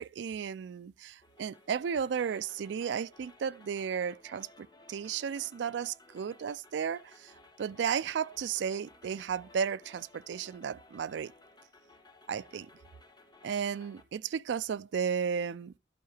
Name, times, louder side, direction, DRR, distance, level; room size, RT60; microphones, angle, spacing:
voice 1, 0.0-11.3 12.3-12.7 13.4-15.7, right 7 dB, 75° right, 0.3 m, -34 dB
sound 1, 1.2-14.1, left 2 dB, 20° left, 1.2 m, -58 dB
11.5 x 4.7 x 4.9 m
head